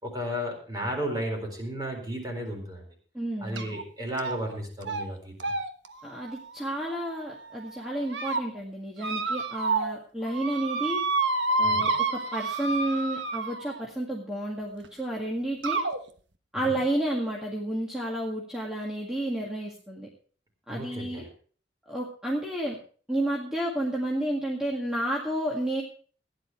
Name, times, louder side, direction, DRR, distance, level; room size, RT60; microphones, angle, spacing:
voice 1, 0.0-2.8 3.4-5.5 11.6-11.9 16.6-16.8 20.7-21.3, equal, 20° right, 1 dB, 4.0 m, -33 dB
voice 2, 3.1-3.8 6.0-11.0 11.6-15.8 16.5-20.1 20.7-21.3 21.9-22.8 23.1-25.8, right 1 dB, 5° right, -3 dB, 1.9 m, -31 dB
sound 1, 3.6-3.8 4.2-4.5 4.8-5.0 5.4-7.3 7.8-8.4 9.0-10.0 10.2-13.9 14.8-14.9 15.6-16.0, right 3 dB, 80° right, 1.2 m, -29 dB
15.5 x 10.5 x 4.7 m, 0.43 s
head